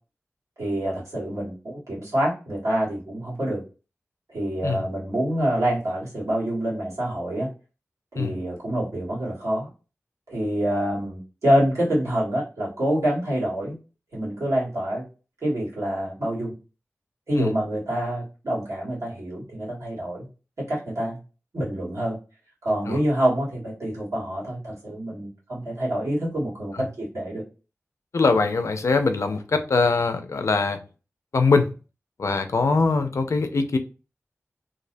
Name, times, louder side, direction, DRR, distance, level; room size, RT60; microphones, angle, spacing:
voice 1, 0.6-3.6 4.3-7.5 8.1-9.7 10.3-13.8 14.1-15.1 15.4-16.5 17.3-20.3 20.6-21.2 21.5-22.2 22.6-27.4, right 1 dB, 80° right, 1.5 m, -26 dB
voice 2, 28.1-30.8 31.3-31.7 32.2-33.8, left 4 dB, 70° left, 0.4 m, -22 dB
2.5 x 2.0 x 2.5 m
cardioid pair, 45°, 5 cm